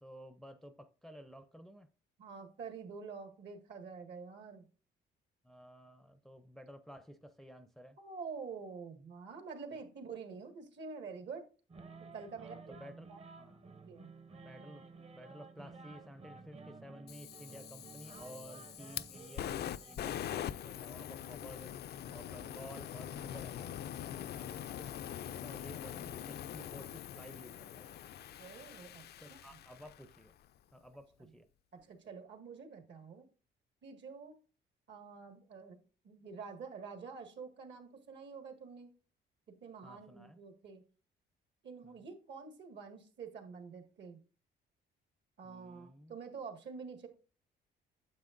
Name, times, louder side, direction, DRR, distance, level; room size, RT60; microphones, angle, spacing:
voice 1, 0.0-1.9 5.4-8.0 12.4-13.1 13.4-13.6 14.3-14.9 15.1-21.8 22.1-28.0 29.2-30.4 30.7-31.5 39.8-40.4 41.8-42.0 45.4-46.1, equal, ahead, 0.5 m, -53 dB
voice 2, 2.2-4.7 8.0-11.4 12.0-12.8 13.1-13.2 13.9-14.1 14.6-14.8 25.9-26.1 28.4-29.4 31.2-31.3 31.7-33.3 33.8-34.4 34.9-35.8 36.0-38.9 39.6-40.8 41.6-44.2 45.4-47.1, right 5 dB, 65° right, 1.8 m, -47 dB
sound 1, 11.7-20.0, right 4 dB, 30° right, 0.8 m, -53 dB
Fire, 17.1-30.2, left 10 dB, 55° left, 0.4 m, -43 dB
9.4 x 7.1 x 2.5 m
cardioid pair, 90°, 20 cm